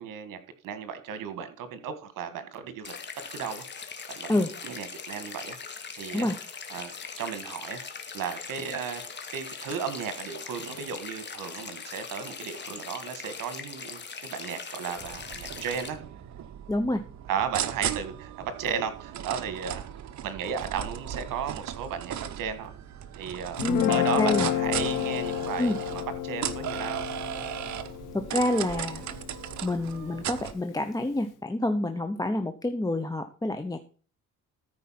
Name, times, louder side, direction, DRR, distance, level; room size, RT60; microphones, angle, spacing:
voice 1, 0.0-3.7 4.1-6.3 6.7-6.9 7.2-7.8 8.1-9.0 9.3-16.0 17.3-19.9 20.2-22.7 23.2-27.0, right 7 dB, 80° right, 11 dB, 1.8 m, -35 dB
sound 1, 2.8-15.9, left 5 dB, 35° left, 1.8 m, -41 dB
sound 2, 15.0-30.5, right 10 dB, 60° right, 1.0 m, -37 dB
voice 2, 16.7-17.0 23.6-24.5 25.6-25.8 28.1-29.0 29.6-33.8, left 1 dB, 10° left, 7 dB, 0.8 m, -28 dB
Guitar, 23.6-29.9, left 12 dB, 70° left, 1.4 m, -31 dB
13.5 x 4.9 x 5.8 m, 0.38 s
cardioid pair, 115°, 32 cm